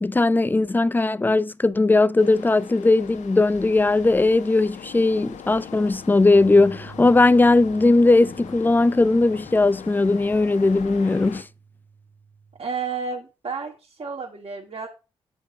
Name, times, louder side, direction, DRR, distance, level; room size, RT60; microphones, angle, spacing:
voice 1, 0.0-11.4, left 2 dB, 15° left, 0.5 m, -18 dB
sound 1, 2.2-11.4, left 8 dB, 75° left, 0.9 m, -41 dB
sound 2, 6.3-12.6, right 6 dB, 75° right, 1.0 m, -48 dB
voice 2, 12.6-14.9, right 5 dB, 50° right, 2.3 m, -31 dB
7.2 x 5.2 x 4.9 m
supercardioid pair, 45°, 13 cm